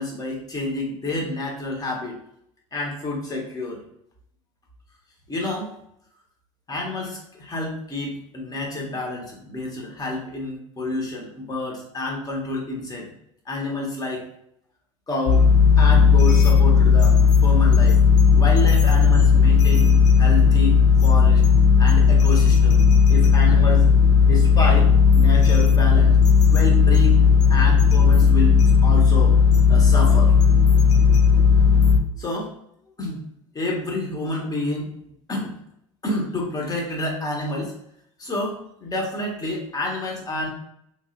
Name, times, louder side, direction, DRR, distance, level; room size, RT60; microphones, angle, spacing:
voice 1, 0.0-2.2 2.7-3.8 5.3-5.7 6.7-13.1 13.5-14.2 15.1-15.5 15.8-18.0 18.3-21.4 21.8-22.8 23.1-23.8 24.2-26.2 26.5-27.2 27.5-29.3 29.7-30.3 32.2-32.5 33.0-33.2 33.5-34.9 35.3-35.5 36.0-37.7 38.2-40.5, left 1 dB, 25° left, -1 dB, 1.1 m, -29 dB
sound 1, 15.3-32.0, left 6 dB, 45° left, 0.6 m, -15 dB
3.0 x 2.7 x 2.4 m, 0.74 s
hypercardioid pair, 80°, 17 cm